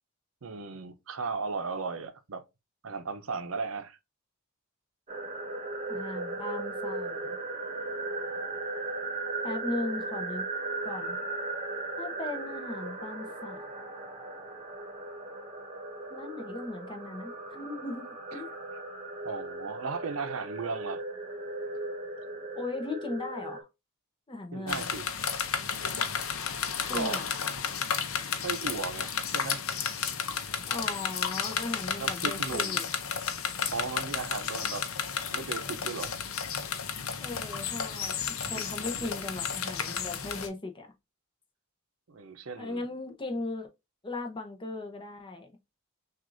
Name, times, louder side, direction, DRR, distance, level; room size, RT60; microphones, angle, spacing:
voice 1, 0.4-2.4 2.8-4.0 19.2-21.0 21.7-21.8 24.5-25.1 26.9-27.2 28.3-29.6 32.0-32.8 33.7-34.9 35.3-36.1 38.5-39.1 42.1-42.9, right 4 dB, 75° right, 0.7 m, -36 dB
sound 1, 5.1-23.6, right 2 dB, 30° right, 1.1 m, -37 dB
voice 2, 5.9-7.4 9.4-10.4 10.8-11.2 12.0-13.6 16.1-18.5 22.5-23.7 24.3-24.9 26.9-27.3 30.7-32.8 37.2-38.2 38.5-40.9 42.6-43.7 44.0-45.5, left 2 dB, 25° left, 0.8 m, -37 dB
sound 2, 24.7-40.5, left 7 dB, 75° left, 0.7 m, -32 dB
6.1 x 2.5 x 2.5 m
head